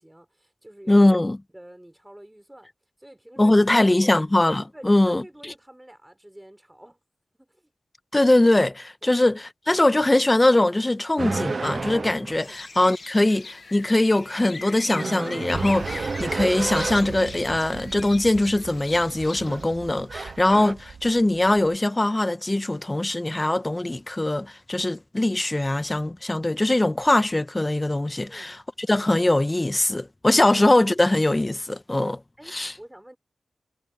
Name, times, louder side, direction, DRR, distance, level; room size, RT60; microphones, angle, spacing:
voice 1, 0.0-1.1 1.5-2.7 3.0-4.1 4.7-7.0 7.3-7.7 9.0-9.2 12.4-12.6 28.2-28.6 32.4-33.2, right 1 dB, 10° right, 6.5 m, -47 dB
voice 2, 0.9-1.4 3.4-5.5 8.1-32.2 32.5-32.7, left 1 dB, 20° left, 1.3 m, -21 dB
sound 1, 11.2-12.5 14.9-17.2 19.3-19.7 20.1-20.7, right 4 dB, 55° right, 0.7 m, -31 dB
sound 2, 12.4-20.0, left 3 dB, 50° left, 1.2 m, -41 dB
sound 3, 15.5-21.8, right 6 dB, 90° right, 2.8 m, -40 dB
cardioid pair, 55°, 0 cm